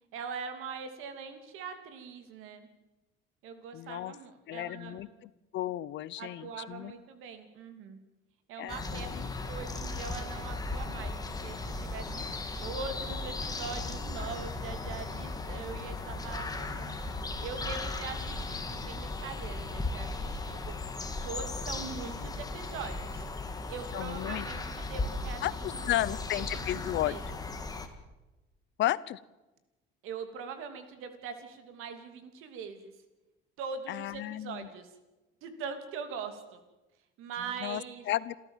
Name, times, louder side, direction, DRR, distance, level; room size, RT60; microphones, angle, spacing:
voice 1, 0.1-2.7 3.4-5.0 6.2-8.0 8.5-9.1 9.4-17.0 17.4-20.7 21.2-23.2 23.7-25.4 25.8-26.0 26.3-27.2 30.0-32.9 33.6-34.9 35.4-36.6 37.2-38.0, right 6 dB, 80° right, 8 dB, 2.9 m, -42 dB
voice 2, 3.7-4.1 4.5-5.1 5.5-6.9 8.6-9.3 23.9-24.5 25.4-27.2 28.8-29.2 33.9-34.7 37.6-37.8 38.1-38.4, left 14 dB, 60° left, 19 dB, 0.8 m, -33 dB
sound 1, 8.7-27.9, left 3 dB, 15° left, 2.1 m, -37 dB
28.0 x 13.5 x 7.4 m, 1.1 s
cardioid pair, 135°, 21 cm